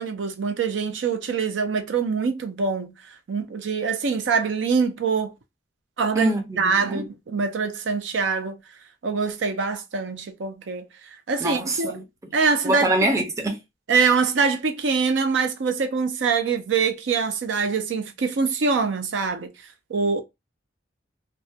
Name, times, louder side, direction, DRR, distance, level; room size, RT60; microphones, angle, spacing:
voice 1, 0.0-2.9 3.3-5.3 6.0-8.6 9.0-10.9 11.3-11.9 12.3-12.9 13.9-19.5 19.9-20.2, right 5 dB, 80° right, 0.4 m, -24 dB
voice 2, 6.1-7.0 11.4-12.0 12.6-13.6, right 1 dB, 15° right, 0.5 m, -24 dB
2.2 x 2.1 x 2.6 m
head